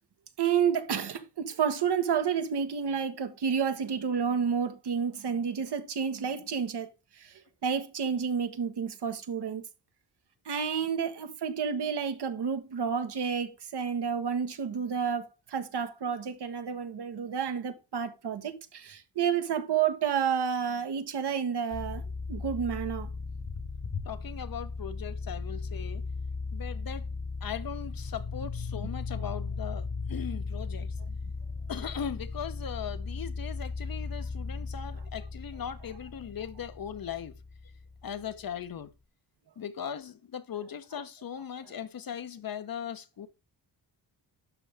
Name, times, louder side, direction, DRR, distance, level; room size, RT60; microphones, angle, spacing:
voice 1, 0.4-6.9 7.2-9.6 10.4-22.0 22.3-23.1 31.0-31.1 35.0-35.1 35.6-36.0, right 7 dB, 60° right, 1.3 m, -30 dB
sound 1, 21.7-38.4, left 4 dB, 30° left, 1.3 m, -37 dB
voice 2, 24.0-26.0 26.5-27.1 27.4-30.9 31.7-37.4 38.0-38.9 39.6-43.3, left 8 dB, 50° left, 1.0 m, -39 dB
12.0 x 5.3 x 3.5 m
cardioid pair, 75°, 45 cm